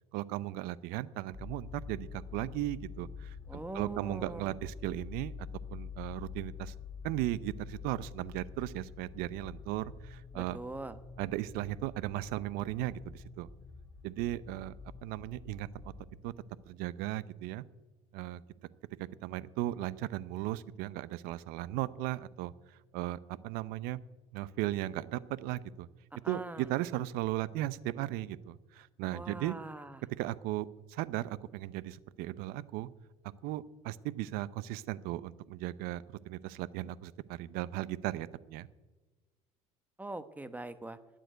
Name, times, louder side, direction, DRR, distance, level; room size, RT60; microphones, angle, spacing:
voice 1, 0.1-5.3 5.7-6.7 7.0-10.6 11.2-13.5 14.0-14.8 15.0-15.9 16.2-16.3 16.7-17.6 18.1-18.4 19.0-22.5 22.9-24.0 24.3-25.9 26.3-29.6 30.2-32.9 33.4-38.7, right 15 dB, 70° right, 18 dB, 0.7 m, -36 dB
sound 1, 1.3-16.0, left 6 dB, 20° left, 3.5 m, -47 dB
voice 2, 3.5-4.6 10.3-11.0 26.1-26.7 29.1-30.0 40.0-41.0, right 2 dB, 10° right, 12 dB, 1.1 m, -42 dB
12.5 x 9.2 x 9.1 m, 1.2 s
hypercardioid pair, 80°, 16 cm